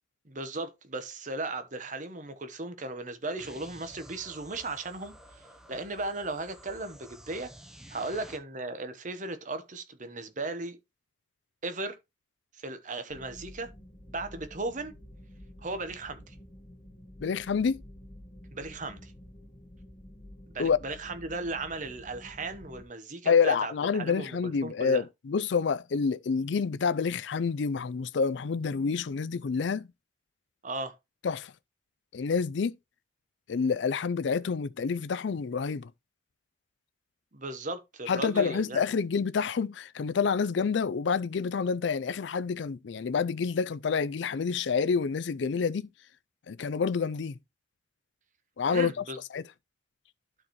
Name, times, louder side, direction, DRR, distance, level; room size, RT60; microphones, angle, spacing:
voice 1, 0.2-7.5 7.9-10.8 11.6-12.0 12.6-13.7 14.1-14.9 15.6-16.3 18.5-19.1 20.5-25.0 30.6-31.0 37.3-38.8 48.7-49.2, right 2 dB, 40° right, 1.0 m, -36 dB
sound 1, 3.4-8.4, equal, 5° right, 0.8 m, -51 dB
sound 2, 13.1-22.8, left 1 dB, 25° left, 1.0 m, -50 dB
voice 2, 17.2-17.8 20.6-20.8 23.2-29.9 31.2-31.5 32.1-32.8 33.5-35.9 38.1-45.9 46.5-47.4 48.6-49.0 49.3-49.4, left 5 dB, 65° left, 0.4 m, -28 dB
12.0 x 4.4 x 3.0 m
head